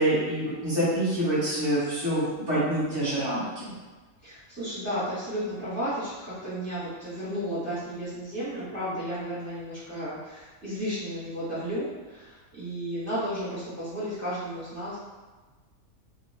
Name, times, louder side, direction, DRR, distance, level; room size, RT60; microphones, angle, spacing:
voice 1, 0.0-3.7, right 1 dB, 20° left, -11 dB, 0.9 m, -26 dB
voice 2, 4.2-15.0, equal, 10° right, -12 dB, 0.9 m, -33 dB
2.4 x 2.3 x 3.3 m, 1.3 s
omnidirectional pair, 1.6 m